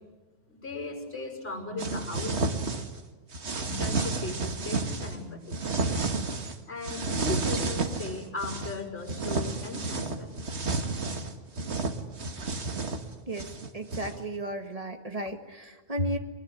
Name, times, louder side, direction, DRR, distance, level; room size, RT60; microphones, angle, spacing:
voice 1, 0.5-2.4 3.5-5.6 6.7-10.4 12.4-12.5 16.0-16.1, left 3 dB, 55° left, 3 dB, 5.8 m, -37 dB
sound 1, 1.8-3.0 3.3-5.2 5.5-6.6 6.8-8.8 9.1-14.2, right 3 dB, 60° right, 1.9 m, -31 dB
voice 2, 13.7-16.2, right 1 dB, 30° right, 6 dB, 1.8 m, -34 dB
23.0 x 21.0 x 9.6 m, 1.2 s
omnidirectional pair, 1.3 m